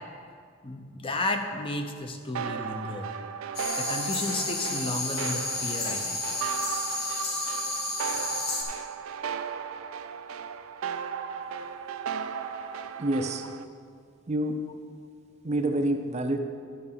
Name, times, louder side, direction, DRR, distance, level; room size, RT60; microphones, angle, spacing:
voice 1, 0.6-3.1 3.8-6.2, left 2 dB, 25° left, 5 dB, 0.6 m, -33 dB
sound 1, 2.3-13.6, right 7 dB, 85° right, 0.4 m, -35 dB
sound 2, 3.5-8.6, left 3 dB, 50° left, 1.5 m, -32 dB
voice 2, 13.0-13.4 14.3-14.6 15.4-16.4, right 1 dB, 35° right, 6 dB, 0.5 m, -27 dB
11.0 x 5.4 x 5.6 m, 2.2 s
head